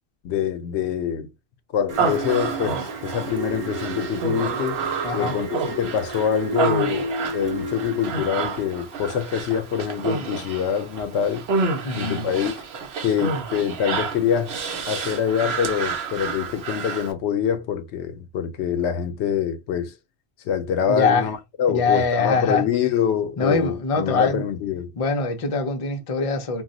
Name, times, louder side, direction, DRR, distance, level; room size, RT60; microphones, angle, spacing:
voice 1, 0.2-1.3 1.7-4.8 5.1-11.5 12.0-12.6 13.0-19.9 20.4-24.9, left 8 dB, 90° left, 0.9 m, -25 dB
sound 1, 1.9-8.7, right 2 dB, 40° right, 0.7 m, -32 dB
Human voice, 1.9-17.1, right 4 dB, 70° right, 0.9 m, -29 dB
voice 2, 5.0-5.4 11.8-12.3 20.9-21.3 21.7-22.6 23.4-24.4 25.0-26.6, left 4 dB, 40° left, 0.5 m, -23 dB
2.3 x 2.0 x 3.7 m
omnidirectional pair, 1.1 m